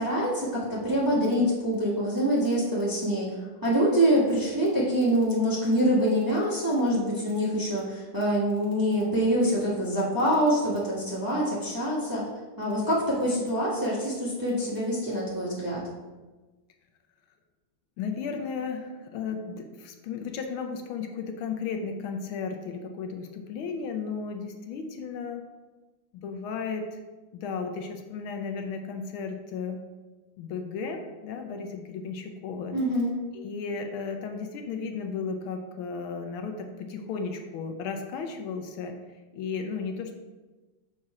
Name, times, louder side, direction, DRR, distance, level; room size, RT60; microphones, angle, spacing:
voice 1, 0.0-3.3 3.6-12.2 12.6-15.8 32.7-33.1, equal, 15° right, -6 dB, 1.0 m, -25 dB
voice 2, 18.0-25.4 26.1-27.0 27.3-29.8 30.4-32.7 33.3-40.1, left 5 dB, 80° left, 5 dB, 1.5 m, -34 dB
6.1 x 4.3 x 4.7 m, 1.2 s
omnidirectional pair, 2.4 m